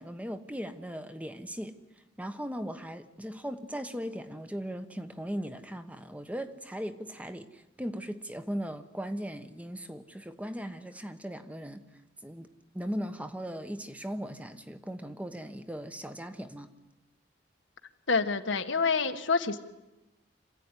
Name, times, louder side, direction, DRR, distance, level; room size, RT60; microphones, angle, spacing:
voice 1, 0.0-1.8 2.2-11.8 12.2-12.5 12.7-16.7, equal, 5° right, 9 dB, 1.1 m, -38 dB
voice 2, 18.1-19.6, left 4 dB, 75° left, 7 dB, 1.5 m, -27 dB
26.5 x 15.5 x 9.9 m, 1.0 s
head